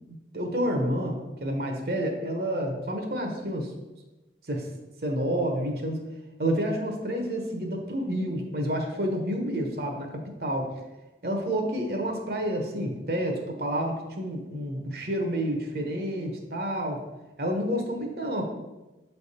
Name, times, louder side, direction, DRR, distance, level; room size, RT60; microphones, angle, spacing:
voice 1, 0.1-3.7 4.5-4.7 5.0-6.1 6.4-10.8 11.2-17.0 17.4-18.4, equal, 55° right, 2 dB, 1.0 m, -29 dB
7.4 x 3.5 x 4.2 m, 1.1 s
head